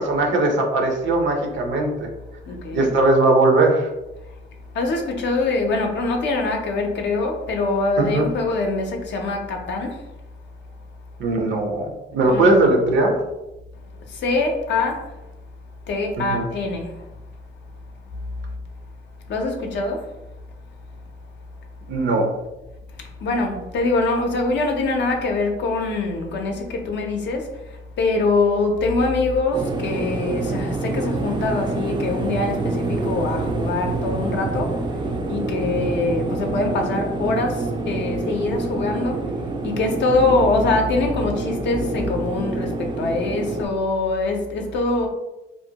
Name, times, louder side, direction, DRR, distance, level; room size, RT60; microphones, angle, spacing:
voice 1, 0.0-2.1 2.7-3.9 8.0-8.3 11.2-13.2 16.2-16.5 21.9-22.3, right 2 dB, 70° right, 3 dB, 0.6 m, -19 dB
voice 2, 2.5-2.9 4.7-10.1 12.2-12.5 14.0-15.2 15.9-17.1 19.3-20.1 23.0-34.9 35.3-39.2 39.6-45.1, left 3 dB, 65° left, 3 dB, 0.5 m, -23 dB
sound 1, 29.5-43.7, right 3 dB, 25° right, 0.3 m, -27 dB
2.5 x 2.1 x 2.7 m, 0.96 s
cardioid pair, 90°, 20 cm